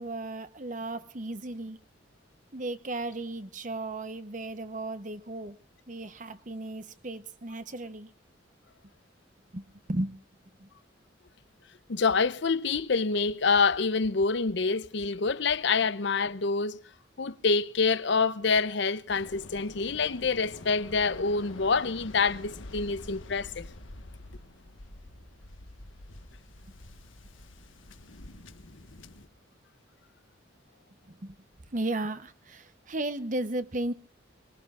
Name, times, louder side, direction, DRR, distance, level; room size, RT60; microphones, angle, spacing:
voice 1, 0.0-1.8 2.5-5.6 5.9-8.1 9.5-10.1 10.6-10.7 31.1-31.4 31.7-33.9, right 2 dB, 40° right, 0.9 m, -35 dB
voice 2, 11.9-16.8 17.2-23.7, left 4 dB, 60° left, 0.7 m, -26 dB
Waves surf, 19.1-29.3, left 2 dB, 80° left, 1.4 m, -47 dB
23.5 x 22.0 x 2.4 m
head